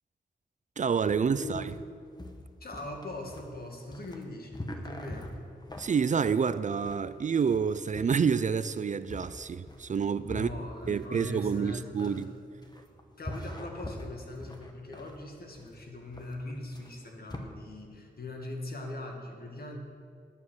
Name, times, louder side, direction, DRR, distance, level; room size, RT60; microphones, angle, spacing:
voice 1, 0.8-1.6 5.8-10.5 10.9-12.3, right 6 dB, 45° right, 0.4 m, -28 dB
sound 1, 1.1-17.4, left 1 dB, 25° left, 1.2 m, -44 dB
voice 2, 2.6-5.3 10.3-12.2 13.2-19.8, left 2 dB, 60° left, 1.9 m, -41 dB
12.0 x 7.5 x 6.3 m
cardioid pair, 65°, 18 cm